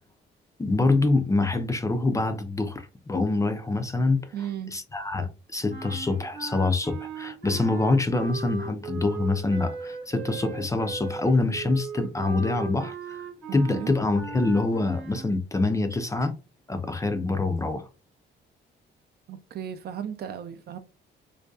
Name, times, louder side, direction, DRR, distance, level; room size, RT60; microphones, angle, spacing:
voice 1, 0.6-4.3 4.7-13.2 13.5-16.3 16.7-17.9, left 2 dB, 15° left, 0.4 m, -25 dB
voice 2, 4.3-4.7 13.7-13.9 19.3-20.8, right 9 dB, 55° right, 0.4 m, -35 dB
sound 1, 5.7-15.3, right 4 dB, 80° right, 0.9 m, -38 dB
2.6 x 2.2 x 2.3 m
cardioid pair, 90°, 20 cm